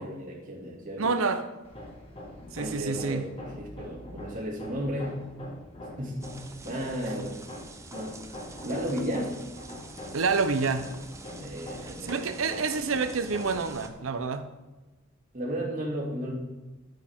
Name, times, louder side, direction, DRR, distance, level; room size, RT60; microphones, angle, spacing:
voice 1, 0.0-1.2 2.6-5.2 6.0-6.3 6.6-7.4 7.9-8.2 8.6-9.3 11.4-12.4 15.3-16.3, equal, 40° right, -3 dB, 2.4 m, -34 dB
voice 2, 1.0-1.5 2.5-3.3 10.1-10.9 11.8-14.4, right 4 dB, 85° right, 9 dB, 0.8 m, -28 dB
Hammer, 1.6-13.7, left 1 dB, 30° left, 1.8 m, -44 dB
sound 1, 6.2-13.9, right 2 dB, 15° right, 0.7 m, -46 dB
10.0 x 9.2 x 3.6 m, 1.2 s
head